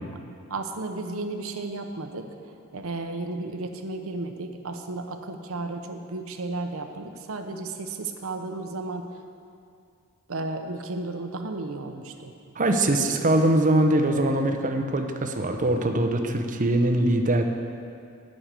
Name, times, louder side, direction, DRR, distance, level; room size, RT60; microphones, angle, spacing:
voice 1, 0.5-2.2 2.7-9.1 10.3-12.3, right 2 dB, 65° right, 5 dB, 0.8 m, -33 dB
voice 2, 12.6-17.4, right 1 dB, 35° right, 5 dB, 0.8 m, -22 dB
9.1 x 6.5 x 8.2 m, 2.4 s
head